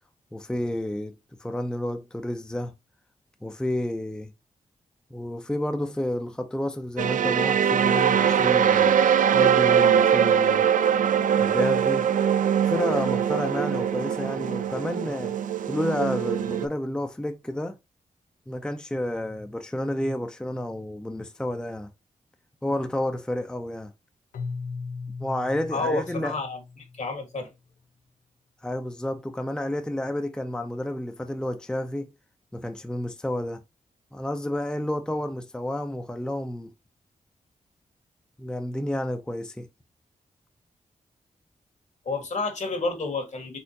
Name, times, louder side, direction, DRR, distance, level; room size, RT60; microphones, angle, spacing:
voice 1, 0.3-1.1 1.4-2.7 3.4-4.3 5.1-9.0 9.3-10.7 11.4-12.1 12.7-15.4 15.7-17.8 18.5-21.9 22.6-23.9 25.2-26.3 28.6-32.1 32.5-33.6 34.1-36.7 38.4-39.7, left 1 dB, 5° left, 0.5 m, -30 dB
sound 1, 7.0-16.7, right 8 dB, 70° right, 0.4 m, -22 dB
Keyboard (musical), 24.3-27.3, left 4 dB, 85° left, 0.6 m, -37 dB
voice 2, 25.7-26.6 26.9-27.5 42.0-43.6, left 3 dB, 60° left, 1.5 m, -29 dB
4.4 x 3.7 x 2.7 m
cardioid pair, 65°, 14 cm